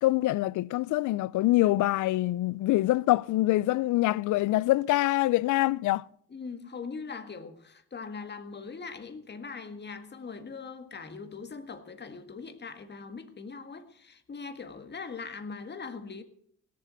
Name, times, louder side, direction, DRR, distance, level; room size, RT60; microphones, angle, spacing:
voice 1, 0.0-6.0, left 17 dB, 80° left, 0.5 m, -25 dB
voice 2, 6.3-16.2, left 5 dB, 35° left, 1.9 m, -41 dB
17.5 x 7.6 x 8.2 m
cardioid pair, 90°, 30 cm